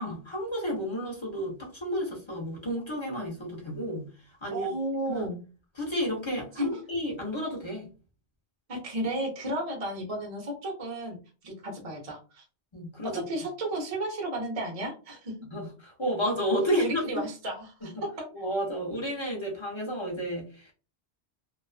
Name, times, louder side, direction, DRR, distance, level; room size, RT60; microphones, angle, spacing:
voice 1, 0.0-4.1 4.4-4.7 5.1-5.2 5.8-7.9 12.7-13.2 15.5-17.2 18.3-20.7, equal, 30° left, -2 dB, 0.5 m, -31 dB
voice 2, 4.5-5.4 6.5-6.7 8.7-11.2 11.4-12.4 13.1-15.3 16.7-18.3, right 1 dB, 40° right, 1 dB, 0.5 m, -33 dB
2.3 x 2.3 x 2.3 m, 0.35 s
omnidirectional pair, 1.2 m